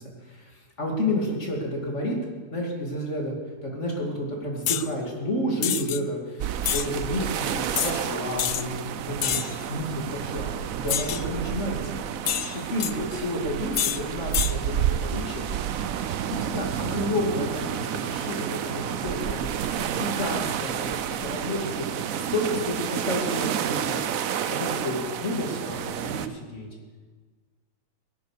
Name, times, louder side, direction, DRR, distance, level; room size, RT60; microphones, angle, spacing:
voice 1, 0.2-2.2 2.5-3.3 3.6-11.8 12.5-15.5 16.3-21.9 22.3-24.0 24.5-26.7, left 1 dB, 50° left, 0 dB, 2.9 m, -31 dB
sound 1, 4.6-4.9 5.6-6.0 6.6-6.9 7.7-7.9 8.4-8.6 9.2-9.6 10.9-11.2 12.2-12.9 13.7-14.0 14.3-14.5, left 10 dB, 75° left, 0.5 m, -27 dB
sound 2, 6.4-26.3, right 9 dB, 70° right, 1.1 m, -30 dB
16.5 x 9.4 x 6.6 m, 1.5 s
omnidirectional pair, 1.6 m